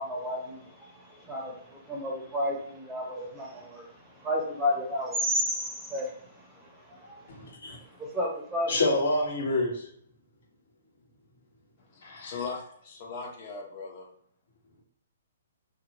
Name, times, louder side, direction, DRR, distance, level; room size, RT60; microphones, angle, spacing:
voice 1, 0.0-3.8 4.2-6.1 6.9-7.3 8.0-8.8, left 1 dB, 10° right, 0.7 m, -32 dB
voice 2, 7.3-7.8 8.7-9.9 12.0-12.3, left 2 dB, 65° left, 1.2 m, -27 dB
voice 3, 11.8-14.1, left 4 dB, 40° left, 0.9 m, -39 dB
2.4 x 2.3 x 3.0 m
hypercardioid pair, 140°, 0 cm